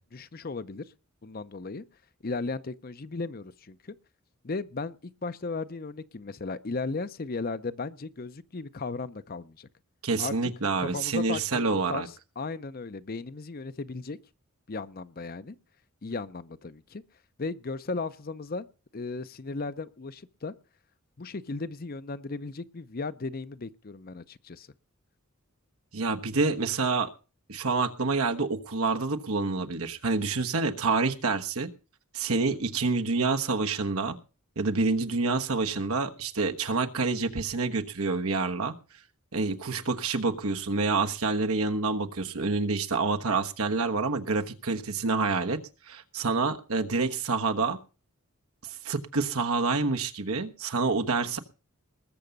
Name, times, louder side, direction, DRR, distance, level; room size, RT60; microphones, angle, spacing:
voice 1, 0.1-0.8 1.2-1.8 2.2-3.9 4.4-9.7 10.2-10.5 10.8-14.2 14.7-15.6 16.0-17.0 17.4-18.7 18.9-20.5 21.2-24.7, left 3 dB, 45° left, 0.6 m, -36 dB
voice 2, 10.0-12.1 25.9-27.1 27.5-31.7 32.1-34.2 34.6-38.7 39.3-45.6 45.9-47.8 48.8-51.4, right 3 dB, 80° right, 1.3 m, -27 dB
20.0 x 7.0 x 5.3 m
head